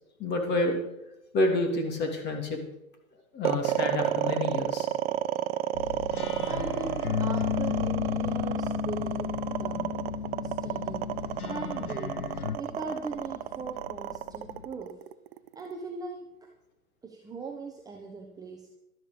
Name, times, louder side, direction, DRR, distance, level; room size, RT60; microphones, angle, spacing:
voice 1, 0.2-0.8 1.3-2.6 3.3-4.9 6.1-6.5, left 2 dB, 25° left, 4 dB, 2.8 m, -29 dB
sound 1, 3.4-15.7, right 12 dB, 45° right, 0.8 m, -31 dB
sound 2, 5.7-12.6, left 7 dB, 80° left, 1.3 m, -32 dB
voice 2, 6.4-10.1 10.4-11.1 11.4-12.3 12.6-15.0 15.5-16.3 17.0-18.7, right 4 dB, 10° right, 1 dB, 1.1 m, -40 dB
sound 3, 9.5-14.7, left 5 dB, 55° left, 3.3 m, -49 dB
12.5 x 12.5 x 5.2 m, 0.86 s
hypercardioid pair, 125°, 44 cm